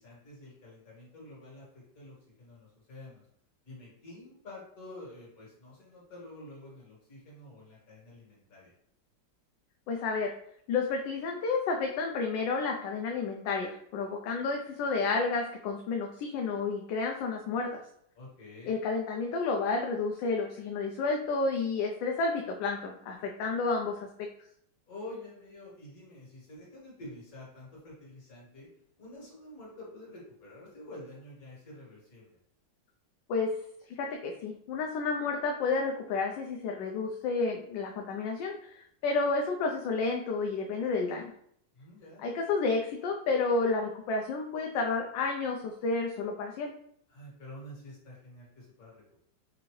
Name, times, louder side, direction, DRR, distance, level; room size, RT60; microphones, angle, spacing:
voice 1, 0.0-3.2 3.7-8.7 18.2-18.8 24.9-28.7 29.0-32.4 41.7-42.2 47.1-49.2, left 1 dB, 50° left, -5 dB, 2.0 m, -48 dB
voice 2, 9.9-10.3 10.7-17.7 18.6-24.1 33.3-33.5 33.9-41.3 42.2-46.7, left 4 dB, 80° left, 1 dB, 1.2 m, -31 dB
5.6 x 2.6 x 3.1 m, 0.69 s
omnidirectional pair, 2.0 m